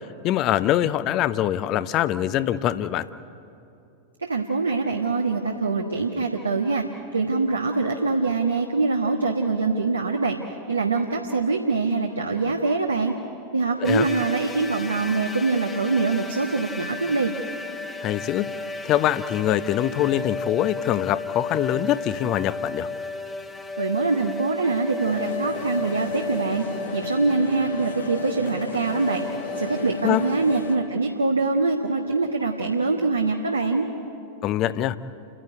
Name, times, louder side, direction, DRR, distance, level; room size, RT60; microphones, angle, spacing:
voice 1, 0.2-3.1 13.8-14.1 18.0-18.5 18.8-22.9 30.0-30.2 34.4-35.0, left 12 dB, 35° left, 15 dB, 0.7 m, -23 dB
voice 2, 4.2-6.8 7.1-10.4 10.7-13.1 13.5-17.3 23.8-26.6 26.9-29.2 29.6-33.9, right 3 dB, 75° right, 2 dB, 1.4 m, -24 dB
sound 1, 13.8-30.9, left 3 dB, 15° left, 1.0 m, -34 dB
sound 2, 25.0-30.8, left 4 dB, 75° left, 1.3 m, -36 dB
29.5 x 11.0 x 9.9 m, 2.7 s
figure-of-eight pair, 90°, 0 cm